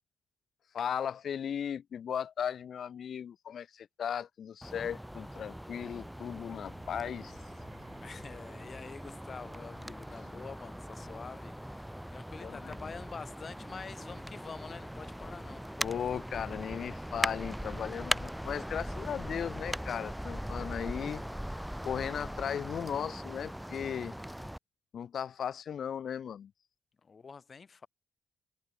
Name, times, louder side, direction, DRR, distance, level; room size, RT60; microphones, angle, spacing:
voice 1, 0.7-7.4 10.2-10.3 12.4-12.8 15.8-21.2 21.8-24.1 24.9-26.5, left 8 dB, 65° left, 1.0 m, -37 dB
sound 1, 4.6-24.6, equal, ahead, 1.4 m, -40 dB
sound 2, 5.7-16.5, right 15 dB, 85° right, 6.6 m, -66 dB
voice 2, 8.0-15.6 20.8-21.2 27.0-27.9, left 5 dB, 45° left, 5.5 m, -47 dB
supercardioid pair, 50°, 0 cm